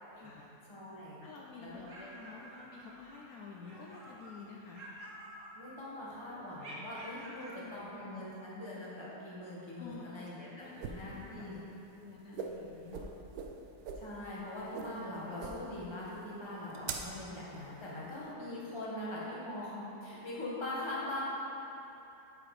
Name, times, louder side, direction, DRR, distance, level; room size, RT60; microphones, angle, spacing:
voice 1, 0.1-0.5 1.2-4.8 7.1-7.9 9.8-11.6 12.0-13.1, left 4 dB, 70° left, -2 dB, 1.1 m, -50 dB
voice 2, 0.7-1.2 1.6-2.5 3.9-4.0 5.5-11.6 14.0-21.2, left 1 dB, 20° left, -7 dB, 1.4 m, -42 dB
sound 1, 1.6-3.3 3.6-4.4 4.7-6.0 6.6-7.7, right 1 dB, 55° right, 1.4 m, -50 dB
sound 2, 10.6-18.3, right 5 dB, 75° right, 1.1 m, -44 dB
8.6 x 5.1 x 4.9 m, 2.9 s
omnidirectional pair, 1.7 m